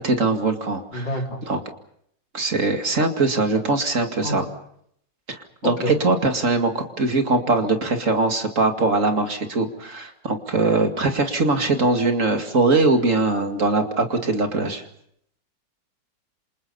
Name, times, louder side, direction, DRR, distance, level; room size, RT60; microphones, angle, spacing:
voice 1, 0.0-1.6 2.3-4.4 5.3-14.8, right 3 dB, 45° right, 5 dB, 2.6 m, -22 dB
voice 2, 0.9-1.4 4.2-4.5 5.6-6.0, equal, 75° left, 1 dB, 4.9 m, -28 dB
28.0 x 27.0 x 5.5 m, 0.71 s
omnidirectional pair, 2.0 m